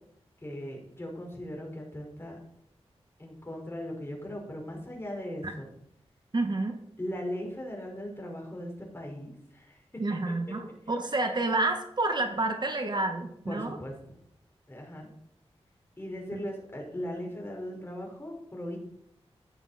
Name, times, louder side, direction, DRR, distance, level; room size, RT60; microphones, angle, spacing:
voice 1, 0.4-2.4 3.2-5.7 7.0-9.8 10.3-10.5 13.5-13.9 14.7-15.1 16.0-18.8, equal, 20° left, 0 dB, 5.3 m, -38 dB
voice 2, 6.3-6.8 10.0-13.8 16.3-16.4, right 2 dB, 40° right, 5 dB, 1.8 m, -29 dB
14.0 x 10.5 x 4.4 m, 0.73 s
wide cardioid pair, 85°, 11 cm